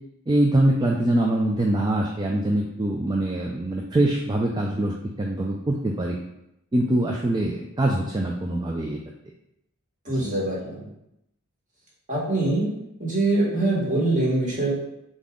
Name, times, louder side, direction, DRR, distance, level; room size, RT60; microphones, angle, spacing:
voice 1, 0.3-4.9 5.2-6.2 6.7-9.0, right 1 dB, 20° right, 0 dB, 0.4 m, -23 dB
voice 2, 10.0-10.9 12.1-12.7 13.0-14.7, right 2 dB, 35° right, -6 dB, 1.6 m, -23 dB
4.0 x 3.6 x 3.6 m, 0.83 s
head